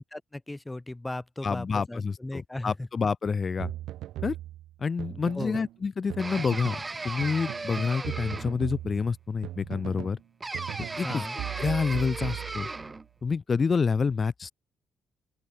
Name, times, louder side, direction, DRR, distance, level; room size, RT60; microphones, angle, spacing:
voice 1, 0.0-2.9 5.3-5.6 11.0-11.4, left 2 dB, 10° left, 1.0 m, -37 dB
voice 2, 1.4-3.7 4.2-4.4 4.8-10.2 11.0-11.2 11.6-12.7 13.2-14.5, left 5 dB, 35° left, 1.2 m, -28 dB
sound 1, 3.6-5.8 6.1-6.9 7.2-10.2 10.5-13.0, right 14 dB, 85° right, 2.9 m, -38 dB
sound 2, 6.2-8.7 10.4-13.0, right 3 dB, 25° right, 2.1 m, -36 dB
open air
cardioid pair, 90°, 0 cm